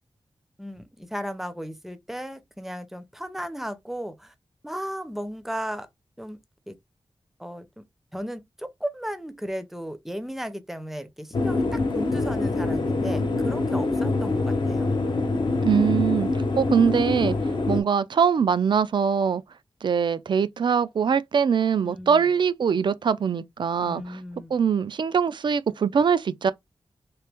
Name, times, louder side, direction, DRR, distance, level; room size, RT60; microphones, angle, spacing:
voice 1, 0.6-4.3 4.6-5.9 6.2-6.4 6.7-6.8 7.4-7.8 8.1-14.9 21.8-22.2 23.8-24.5, equal, 5° right, 0.6 m, -35 dB
sound 1, 11.3-17.8, left 3 dB, 60° left, 0.9 m, -25 dB
voice 2, 15.6-16.3 16.6-17.3 17.7-19.4 19.8-24.2 24.5-26.5, right 7 dB, 60° right, 0.4 m, -22 dB
3.3 x 3.0 x 3.4 m
wide cardioid pair, 120°, 9 cm